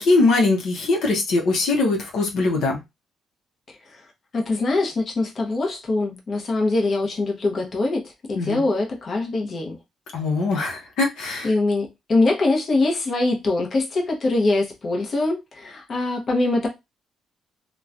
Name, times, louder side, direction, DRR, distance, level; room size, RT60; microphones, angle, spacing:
voice 1, 0.0-2.8 8.4-8.6 10.1-11.5, left 3 dB, 80° left, 0.8 m, -21 dB
voice 2, 4.3-9.8 11.4-16.7, left 2 dB, 45° left, 0.8 m, -23 dB
3.0 x 2.2 x 2.4 m
cardioid pair, 90°, 0 cm